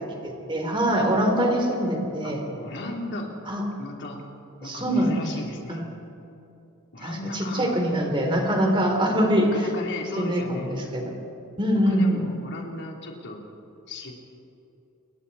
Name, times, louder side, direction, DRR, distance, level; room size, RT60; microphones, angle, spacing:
voice 1, 0.2-2.4 3.5-3.6 4.6-5.2 5.7-5.9 7.0-9.5 10.2-10.4 10.7-11.1 11.6-12.4, equal, 20° right, 2 dB, 3.5 m, -23 dB
voice 2, 1.8-3.3 3.8-4.2 4.6-5.9 6.9-7.8 9.4-10.8 11.7-13.4 13.9-14.1, left 2 dB, 55° left, 0 dB, 3.5 m, -36 dB
29.5 x 22.5 x 4.3 m, 2.8 s
head